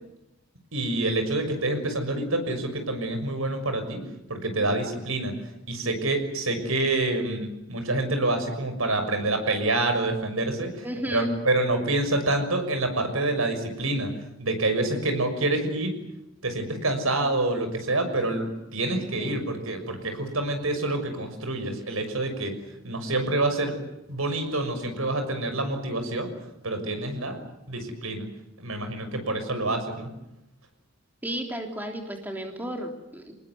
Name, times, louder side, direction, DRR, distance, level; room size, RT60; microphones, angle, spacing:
voice 1, 0.7-4.0 4.3-5.3 5.7-10.9 11.1-14.1 14.4-15.9 16.4-22.5 22.8-23.7 24.1-26.3 26.6-27.4 27.7-28.2 28.6-30.1, right 2 dB, 85° right, 7 dB, 6.3 m, -27 dB
voice 2, 10.8-11.4 19.2-19.4 31.2-33.4, equal, 10° right, 3 dB, 3.4 m, -33 dB
26.5 x 20.0 x 9.6 m, 0.88 s
head